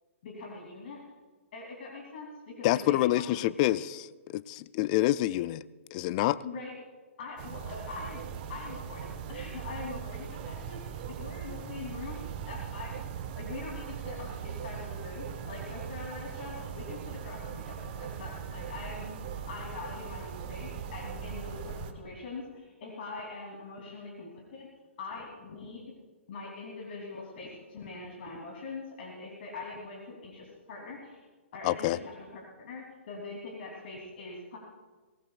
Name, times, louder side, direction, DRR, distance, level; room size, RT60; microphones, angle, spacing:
voice 1, 0.2-1.0 1.5-3.6 6.4-6.7 7.2-8.2 8.5-13.0 13.3-19.1 19.5-24.7 25.0-25.9 26.3-31.3 31.5-34.6, left 3 dB, 50° left, -1 dB, 3.1 m, -43 dB
voice 2, 2.6-4.1 4.3-5.6 5.9-6.4 31.6-32.0, left 15 dB, 35° left, 17 dB, 0.4 m, -27 dB
sound 1, 7.4-21.9, right 7 dB, 40° right, 1.2 m, -40 dB
23.0 x 18.0 x 2.4 m, 1.3 s
figure-of-eight pair, 120°, 7 cm